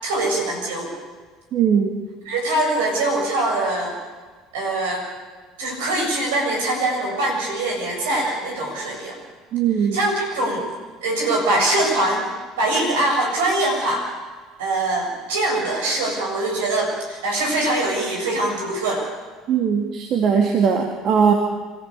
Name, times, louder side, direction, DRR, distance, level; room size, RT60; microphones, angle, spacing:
voice 1, 0.0-0.9 2.3-4.0 4.5-5.0 5.6-9.2 9.8-10.7 11.0-12.3 12.6-14.1 14.6-19.1, right 2 dB, 75° right, 1 dB, 7.4 m, -23 dB
voice 2, 1.5-1.9 9.5-10.0 19.5-21.3, right 7 dB, 50° right, 3 dB, 2.4 m, -19 dB
27.0 x 14.5 x 8.5 m, 1.4 s
hypercardioid pair, 65°, 0 cm